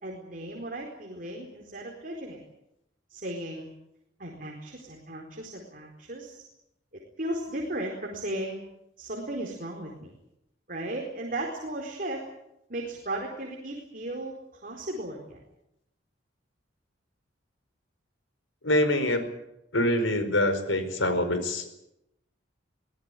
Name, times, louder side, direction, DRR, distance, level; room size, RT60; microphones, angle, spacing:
voice 1, 0.0-2.4 3.1-3.7 4.2-6.4 7.2-8.6 9.0-10.2 10.7-12.2 12.7-14.3 14.6-15.4, right 1 dB, 45° right, 0 dB, 4.4 m, -35 dB
voice 2, 18.6-19.2 19.7-21.7, left 1 dB, 90° left, 8 dB, 4.9 m, -25 dB
24.0 x 18.5 x 9.2 m, 0.84 s
head